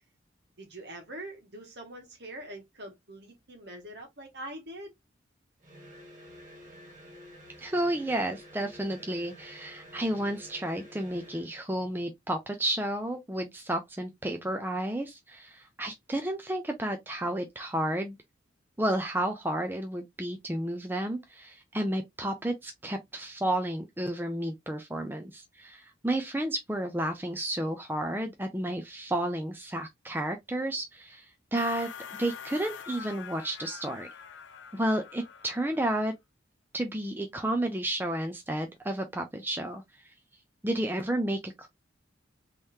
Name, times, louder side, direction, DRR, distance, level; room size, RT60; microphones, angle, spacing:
voice 1, 0.6-4.9, right 1 dB, 60° right, 1.6 m, -43 dB
sound 1, 5.6-11.6, equal, 40° right, 1.4 m, -50 dB
voice 2, 7.6-18.2 18.8-31.9 32.2-34.1 34.7-36.1 36.7-40.1 40.6-41.7, right 1 dB, 10° right, 0.5 m, -31 dB
sound 2, 31.6-36.1, left 7 dB, 70° left, 0.6 m, -45 dB
3.8 x 3.1 x 2.7 m
head